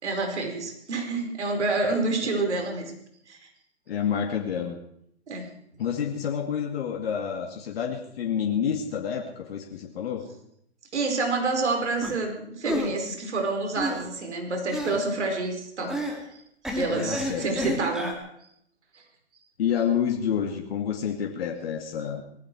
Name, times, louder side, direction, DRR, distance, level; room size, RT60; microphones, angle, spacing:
voice 1, 0.0-2.9 3.3-3.4 5.3-5.5 10.9-16.0 16.7-18.1, right 3 dB, 75° right, 3 dB, 4.8 m, -28 dB
voice 2, 3.9-4.8 5.8-10.3 16.9-17.8 19.6-22.2, left 8 dB, 55° left, 2 dB, 2.3 m, -29 dB
sound 1, 12.0-12.1 12.6-12.9 13.8-14.1 14.7-15.0 15.9-16.2 16.6-18.1, equal, ahead, 2.6 m, -30 dB
20.0 x 15.0 x 4.7 m, 0.72 s
hypercardioid pair, 130°, 35 cm